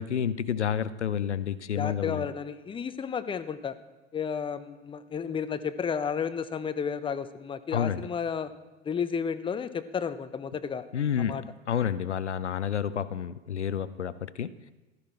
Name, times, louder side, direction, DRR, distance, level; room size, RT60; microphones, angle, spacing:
voice 1, 0.0-2.3 7.7-8.0 10.9-11.4 11.7-14.5, left 8 dB, 85° left, 15 dB, 0.7 m, -29 dB
voice 2, 1.8-3.8 4.1-8.5 8.8-10.9 11.2-11.4, left 7 dB, 15° left, 12 dB, 0.7 m, -32 dB
16.0 x 12.5 x 4.4 m, 1.2 s
figure-of-eight pair, 85°, 34 cm